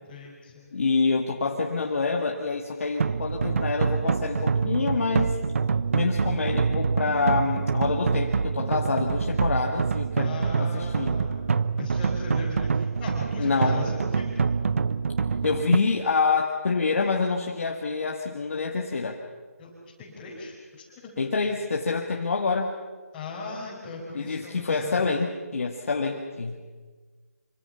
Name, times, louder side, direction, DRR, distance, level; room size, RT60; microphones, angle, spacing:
voice 1, 0.0-0.7 10.2-11.4 11.8-14.5 19.6-19.7 20.0-21.1 23.1-25.1, left 3 dB, 15° left, -8 dB, 5.2 m, -39 dB
voice 2, 0.7-5.4 5.9-10.3 10.6-11.1 13.4-13.9 15.4-19.2 21.2-22.7 24.1-26.6, left 4 dB, 60° left, 0 dB, 2.2 m, -26 dB
sound 1, 3.0-15.8, right 5 dB, 55° right, 0.7 m, -26 dB
26.0 x 25.5 x 5.9 m, 1.4 s
figure-of-eight pair, 160°, 8 cm